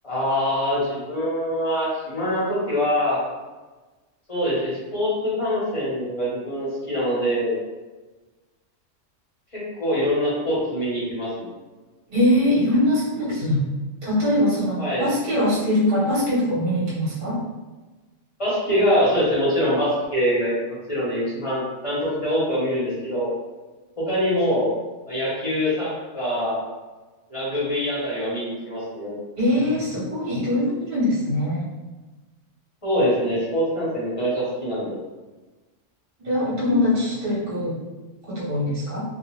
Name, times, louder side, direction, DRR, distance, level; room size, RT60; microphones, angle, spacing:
voice 1, 0.0-3.2 4.3-7.6 9.5-11.5 14.8-15.1 18.4-20.5 20.9-23.3 24.0-24.7 25.1-26.6 27.3-29.1 32.8-35.0, equal, 30° left, -8 dB, 0.9 m, -24 dB
voice 2, 12.1-13.7 14.0-17.4 29.4-31.7 36.2-37.7 38.3-39.0, left 1 dB, 40° right, -8 dB, 1.1 m, -22 dB
2.3 x 2.3 x 3.1 m, 1.2 s
omnidirectional pair, 1.3 m